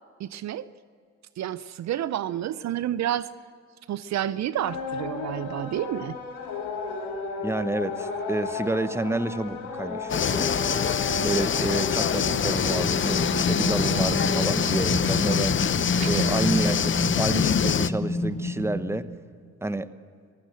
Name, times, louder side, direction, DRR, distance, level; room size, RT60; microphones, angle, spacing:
voice 1, 0.2-0.6 1.4-3.3 3.9-6.2 16.0-16.3, right 11 dB, 60° right, 17 dB, 0.6 m, -29 dB
sound 1, 4.6-14.9, left 4 dB, 90° left, 3.2 m, -34 dB
voice 2, 7.4-10.6 11.2-15.6 16.1-16.9 17.2-19.1 19.6-19.9, right 2 dB, 10° right, 13 dB, 1.0 m, -29 dB
sound 2, 10.1-17.9, left 8 dB, 40° left, 0.7 m, -25 dB
sound 3, 12.2-19.0, left 1 dB, 20° left, 6.5 m, -29 dB
24.0 x 15.0 x 7.8 m, 2.2 s
supercardioid pair, 55°, 31 cm